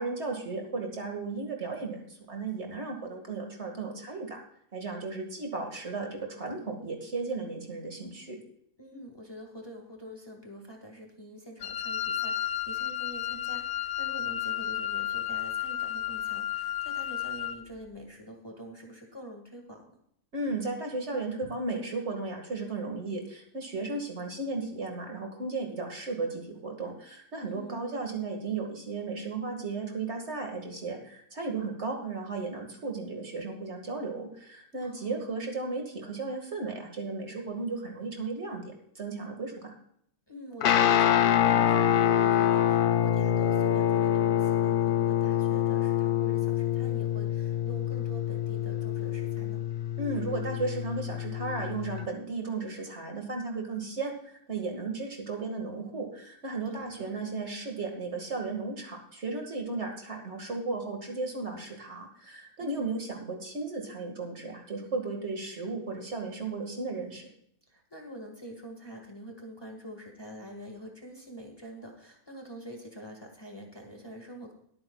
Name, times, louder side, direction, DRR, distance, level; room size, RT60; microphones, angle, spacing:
voice 1, 0.0-4.4 4.7-8.4 20.3-39.7 50.0-54.1 54.5-67.3, right 3 dB, 50° right, 2 dB, 2.2 m, -35 dB
voice 2, 8.8-20.0 27.4-27.9 34.8-35.2 40.3-49.7 56.7-57.2 62.6-63.0 67.7-74.5, equal, 15° left, 1 dB, 1.7 m, -46 dB
Wind instrument woodwind instrument, 11.6-17.6, left 11 dB, 60° left, 0.9 m, -32 dB
Guitar, 40.6-52.1, left 11 dB, 80° left, 0.4 m, -26 dB
21.5 x 9.0 x 2.3 m, 0.69 s
omnidirectional pair, 1.5 m